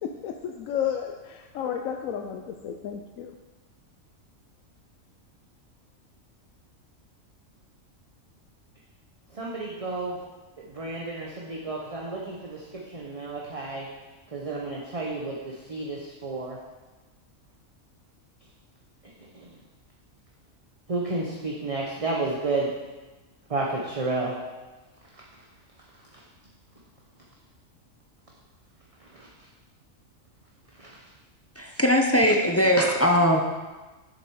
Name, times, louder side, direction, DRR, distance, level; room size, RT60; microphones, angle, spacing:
voice 1, 0.0-3.3, left 8 dB, 85° left, 4 dB, 1.0 m, -32 dB
voice 2, 9.3-10.2 10.7-13.9 14.3-16.6 19.3-19.5 20.9-22.7 23.5-24.3 29.1-29.3 30.8-30.9, right 3 dB, 30° right, -3 dB, 0.8 m, -31 dB
voice 3, 31.6-33.4, equal, 20° left, 1 dB, 0.4 m, -20 dB
7.4 x 6.9 x 4.7 m, 1.2 s
omnidirectional pair, 1.4 m